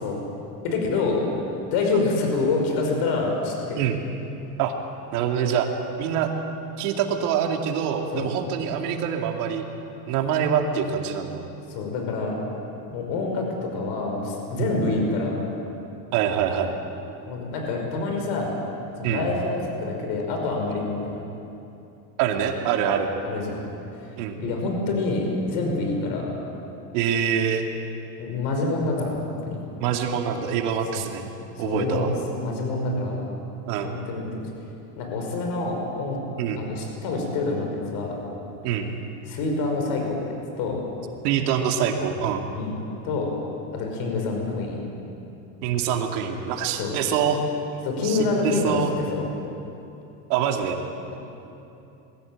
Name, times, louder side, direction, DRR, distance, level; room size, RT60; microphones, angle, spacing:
voice 1, 0.6-3.8 8.1-8.3 11.7-12.4 12.9-15.5 17.3-18.5 19.0-21.2 23.2-23.6 24.0-26.4 28.2-29.6 30.9-31.1 31.5-33.2 33.8-34.5 35.0-36.2 36.6-38.2 39.3-40.8 42.5-42.7 43.0-43.3 43.7-44.8 46.8-46.9 47.8-49.3, left 3 dB, 55° left, 2 dB, 5.5 m, -27 dB
voice 2, 5.1-5.7 6.0-6.3 6.8-9.7 10.0-11.4 14.6-14.7 16.1-16.8 19.0-19.3 22.2-23.1 24.2-24.4 26.9-27.6 29.8-31.3 31.6-32.1 33.7-34.0 36.4-36.6 38.6-38.9 41.2-42.4 45.6-47.4 48.0-48.2 48.4-48.9 50.3-50.8, right 8 dB, 65° right, 3 dB, 2.6 m, -25 dB
22.0 x 16.0 x 8.9 m, 2.8 s
supercardioid pair, 135°, 48 cm